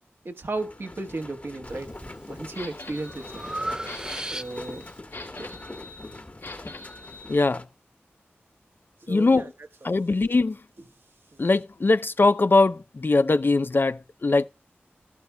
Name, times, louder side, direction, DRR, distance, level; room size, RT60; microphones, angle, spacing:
voice 1, 0.2-1.9 2.3-3.4 4.3-4.8 5.3-5.5 9.0-9.5 9.9-10.0 11.3-11.4, right 2 dB, 60° right, 1.3 m, -34 dB
sound 1, 0.5-7.7, left 2 dB, 35° left, 1.4 m, -43 dB
Breathing, 1.6-2.1 2.6-4.9, right 1 dB, 15° right, 0.4 m, -35 dB
sound 2, 2.5-7.4, left 3 dB, 75° left, 2.1 m, -43 dB
voice 2, 7.3-7.6 9.1-9.5 9.8-10.6 11.4-14.5, left 3 dB, 50° left, 0.5 m, -21 dB
12.5 x 10.5 x 2.2 m
cardioid pair, 45°, 4 cm